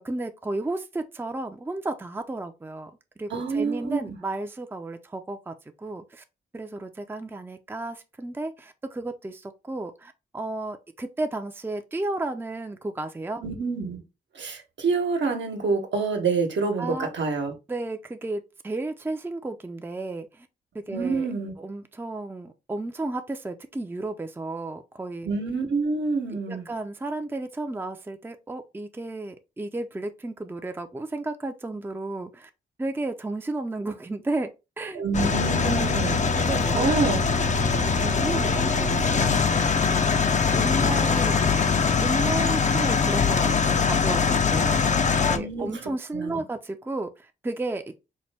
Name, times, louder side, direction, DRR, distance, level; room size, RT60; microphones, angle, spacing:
voice 1, 0.0-6.2 6.5-13.4 16.8-17.1 17.7-20.5 20.7-25.3 26.3-32.5 32.8-34.5 34.8-35.0 35.6-36.0 36.4-37.3 37.6-39.6 39.9-40.2 40.5-41.6 42.0-48.0, right 2 dB, 10° right, 0.5 m, -33 dB
voice 2, 3.3-4.2 13.4-14.0 14.3-17.5 20.9-21.5 25.2-26.7 34.9-36.2 36.7-37.2 45.3-46.4, right 4 dB, 75° right, 1.0 m, -27 dB
sound 1, 35.1-45.4, left 5 dB, 40° left, 0.5 m, -22 dB
4.2 x 2.1 x 3.3 m
cardioid pair, 60°, 19 cm